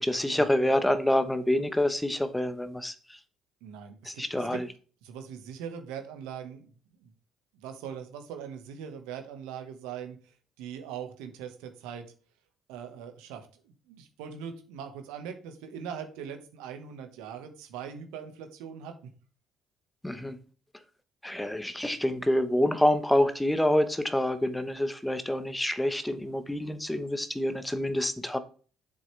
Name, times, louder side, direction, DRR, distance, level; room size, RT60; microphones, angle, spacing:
voice 1, 0.0-3.2 4.0-4.6 20.0-20.4 21.2-28.4, left 1 dB, 5° left, 1.1 m, -27 dB
voice 2, 3.6-4.6 5.0-6.7 7.0-7.1 7.5-12.0 12.7-19.1, right 8 dB, 80° right, 1.5 m, -41 dB
7.6 x 6.3 x 3.4 m
supercardioid pair, 70°, 0 cm